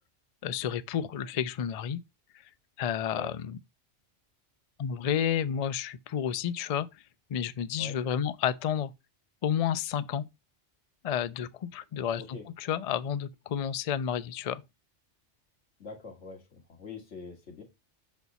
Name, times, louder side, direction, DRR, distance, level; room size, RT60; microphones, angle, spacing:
voice 1, 0.4-2.0 2.8-3.6 4.8-6.9 7.3-8.9 9.4-10.2 11.0-14.6, left 9 dB, 60° left, 0.4 m, -31 dB
voice 2, 15.8-17.6, left 4 dB, 85° left, 2.0 m, -44 dB
5.8 x 4.2 x 4.0 m
omnidirectional pair, 1.2 m